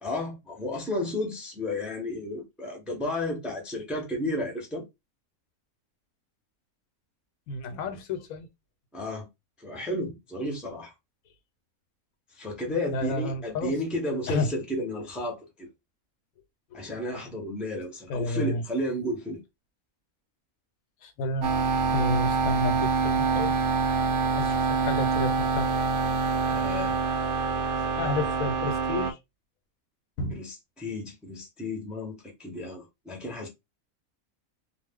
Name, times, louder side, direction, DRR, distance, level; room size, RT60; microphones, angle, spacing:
voice 1, 0.0-4.8 8.9-9.3 9.6-10.9 12.4-15.7 16.7-19.4 26.5-26.9 30.3-33.5, left 1 dB, ahead, 0.6 m, -32 dB
voice 2, 7.5-8.5 12.9-13.7 14.3-14.5 16.7-16.9 18.1-18.6 21.0-21.5 21.9-23.6 24.4-25.7 28.0-29.2 30.2-30.4, left 2 dB, 80° left, 1.0 m, -31 dB
sound 1, 21.4-29.1, right 4 dB, 65° right, 0.7 m, -26 dB
2.4 x 2.0 x 3.5 m
omnidirectional pair, 1.5 m